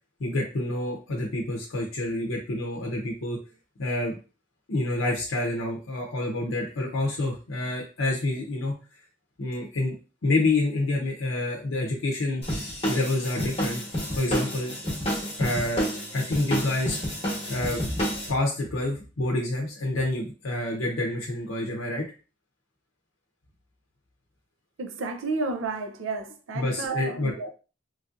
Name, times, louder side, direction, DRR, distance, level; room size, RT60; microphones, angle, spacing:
voice 1, 0.2-3.4 3.8-4.2 4.7-8.7 9.4-9.9 10.2-12.4 12.9-13.8 14.2-14.7 15.4-15.9 16.1-17.0 17.5-17.9 18.3-22.0 26.5-27.3, left 2 dB, 85° left, 0.6 m, -28 dB
sound 1, 12.4-18.3, equal, 30° left, 1.0 m, -30 dB
voice 2, 24.8-27.5, right 3 dB, 85° right, 0.5 m, -31 dB
3.1 x 2.6 x 2.4 m
head